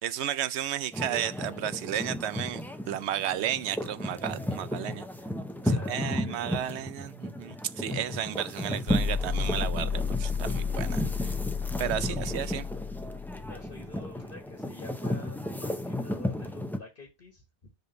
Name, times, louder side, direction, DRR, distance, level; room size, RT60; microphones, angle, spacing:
voice 1, 0.0-5.0 5.6-11.3 11.8-12.7, right 11 dB, 75° right, 0.9 m, -33 dB
sound 1, 0.9-16.8, left 1 dB, ahead, 0.5 m, -34 dB
voice 2, 5.6-6.4 12.0-12.2 13.1-17.4, left 4 dB, 50° left, 1.6 m, -48 dB
sound 2, 8.9-13.9, left 6 dB, 70° left, 1.4 m, -32 dB
5.3 x 4.3 x 5.1 m
omnidirectional pair, 1.1 m